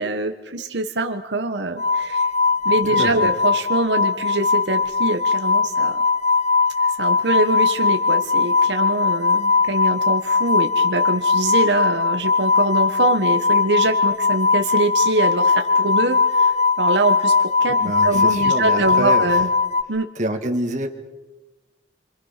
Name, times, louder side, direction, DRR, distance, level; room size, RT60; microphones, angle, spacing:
voice 1, 0.0-2.2 2.6-6.0 7.0-17.3 17.6-19.5 19.9-20.1, right 2 dB, 80° right, 5 dB, 1.4 m, -24 dB
sound 1, 1.8-19.8, left 4 dB, 40° left, 1.0 m, -19 dB
voice 2, 2.8-3.3 17.8-19.4 20.2-20.9, right 1 dB, 45° right, 4 dB, 2.1 m, -26 dB
27.5 x 25.5 x 5.9 m, 1.1 s
head